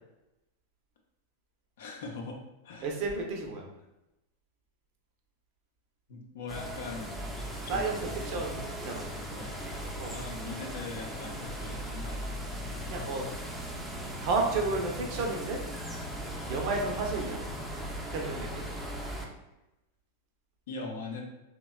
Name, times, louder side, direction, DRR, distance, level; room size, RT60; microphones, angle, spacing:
voice 1, 1.8-2.4 2.6-2.9 6.1-7.2 7.7-7.9 9.4-9.6 10.1-12.4 20.7-21.2, left 3 dB, 65° left, 1 dB, 0.5 m, -41 dB
voice 2, 2.8-3.6 7.7-9.1 10.0-10.2 12.9-13.3 14.2-15.6 16.5-17.4 18.1-18.6, right 3 dB, 50° right, 1 dB, 0.6 m, -32 dB
sound 1, 6.5-19.3, equal, 5° right, 0.4 m, -38 dB
2.8 x 2.2 x 2.2 m, 0.95 s
hypercardioid pair, 95°, 0 cm